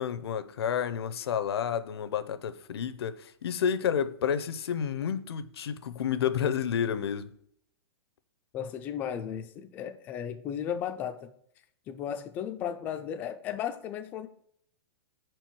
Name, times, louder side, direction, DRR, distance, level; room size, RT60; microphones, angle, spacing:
voice 1, 0.0-7.3, left 8 dB, 70° left, 0.6 m, -30 dB
voice 2, 8.5-11.3 11.9-14.3, left 9 dB, 15° left, 0.3 m, -35 dB
5.1 x 4.5 x 5.9 m
hypercardioid pair, 165°, 14 cm